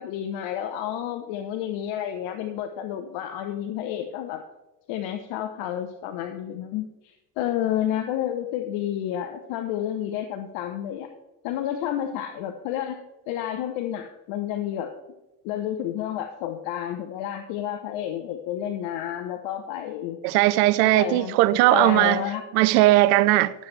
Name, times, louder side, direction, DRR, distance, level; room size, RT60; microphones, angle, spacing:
voice 1, 0.0-4.4 4.9-11.1 11.4-13.0 13.3-14.9 15.4-20.2 20.8-21.4 21.7-22.4, left 11 dB, 75° left, 0.9 m, -30 dB
voice 2, 20.2-22.2 22.5-23.5, right 17 dB, 80° right, 0.6 m, -18 dB
11.5 x 7.3 x 3.3 m
hypercardioid pair, 65°, 47 cm